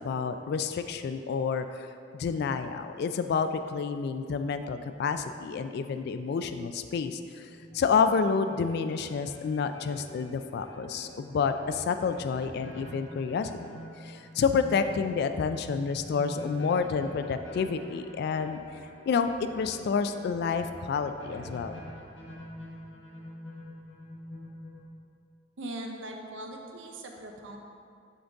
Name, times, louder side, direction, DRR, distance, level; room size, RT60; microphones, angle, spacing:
voice 1, 0.0-13.5 14.0-18.6 19.1-21.8, left 5 dB, 60° left, 9 dB, 0.3 m, -29 dB
sound 1, 7.3-24.8, equal, 80° left, 1.2 m, -46 dB
voice 2, 25.6-27.6, right 1 dB, 80° right, 2 dB, 0.7 m, -40 dB
10.0 x 4.0 x 3.5 m, 2.3 s
head